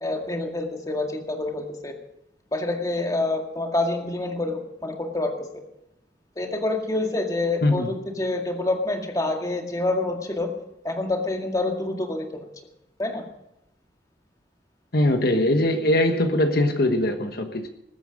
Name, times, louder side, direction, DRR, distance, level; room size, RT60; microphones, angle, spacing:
voice 1, 0.0-1.9 2.5-5.5 6.4-10.5 10.8-12.5 13.0-13.3, left 2 dB, 20° left, 2.0 m, -27 dB
voice 2, 14.9-17.7, left 1 dB, 60° left, 1.3 m, -21 dB
20.0 x 9.0 x 6.4 m
head